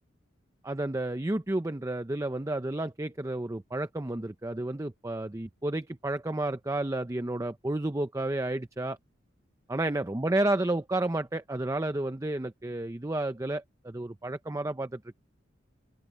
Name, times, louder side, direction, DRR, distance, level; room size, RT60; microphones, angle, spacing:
voice 1, 0.6-9.0 9.7-15.2, right 2 dB, 15° right, 0.5 m, -31 dB
head